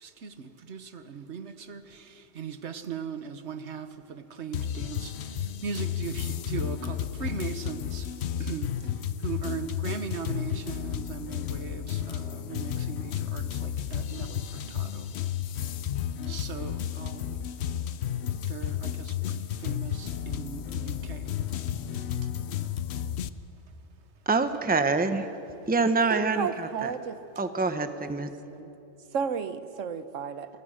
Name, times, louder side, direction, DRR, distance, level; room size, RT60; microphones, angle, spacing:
voice 1, 0.0-5.1 5.6-8.1 8.4-8.7 9.2-14.4 14.7-15.1 16.3-17.4 18.5-19.1 19.6-21.3, right 6 dB, 65° right, 10 dB, 1.4 m, -38 dB
sound 1, 4.5-23.3, left 10 dB, 65° left, 0.9 m, -32 dB
voice 2, 24.3-25.3 25.7-26.9 27.4-28.3, right 3 dB, 10° right, 9 dB, 0.8 m, -26 dB
voice 3, 26.1-27.2 27.7-28.2 28.5-28.7 29.1-30.5, right 6 dB, 80° right, 12 dB, 1.3 m, -33 dB
27.5 x 22.5 x 6.4 m, 2.9 s
omnidirectional pair, 1.3 m